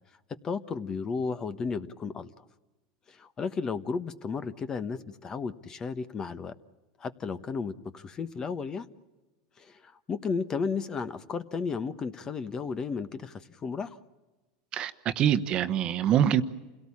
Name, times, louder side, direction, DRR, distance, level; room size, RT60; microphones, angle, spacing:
voice 1, 0.4-2.4 3.1-6.5 7.0-8.9 9.6-14.0, left 5 dB, 25° left, 1.1 m, -33 dB
voice 2, 14.7-16.4, right 10 dB, 40° right, 1.1 m, -25 dB
28.5 x 17.5 x 8.7 m
supercardioid pair, 125°, 2 cm